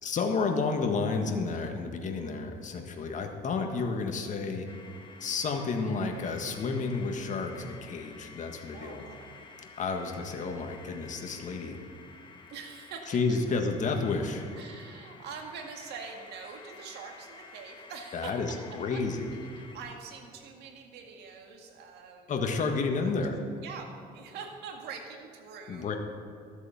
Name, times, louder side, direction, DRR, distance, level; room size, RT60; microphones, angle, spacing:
voice 1, 0.0-4.7 5.2-9.0 9.8-11.8 13.1-14.5 18.1-19.3 22.3-23.4 25.7-25.9, left 4 dB, 45° left, 4 dB, 1.6 m, -31 dB
sound 1, 4.7-19.9, left 4 dB, 30° left, 1.5 m, -51 dB
voice 2, 8.7-9.3 12.5-13.4 14.5-18.6 18.9-19.0 19.5-22.5 23.0-23.1 23.6-25.9, right 5 dB, 80° right, 3 dB, 2.0 m, -44 dB
13.5 x 8.1 x 7.1 m, 2.3 s
cardioid pair, 110°, 17 cm